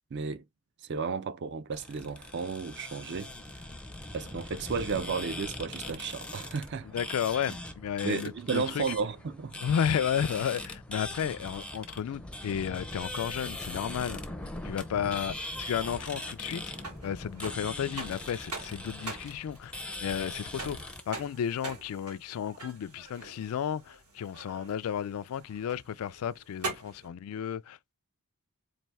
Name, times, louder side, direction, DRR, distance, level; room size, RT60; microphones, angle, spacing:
voice 1, 0.1-0.4 0.8-3.3 4.1-6.9 8.0-9.6, right 5 dB, 50° right, 0.4 m, -33 dB
sound 1, 1.7-21.0, left 1 dB, 5° left, 0.5 m, -41 dB
voice 2, 6.9-8.8 9.6-14.2 14.6-16.7 17.0-19.7 20.0-27.9, left 8 dB, 70° left, 0.3 m, -33 dB
sound 2, 15.5-27.1, right 3 dB, 80° right, 2.9 m, -44 dB
4.3 x 2.6 x 3.4 m
head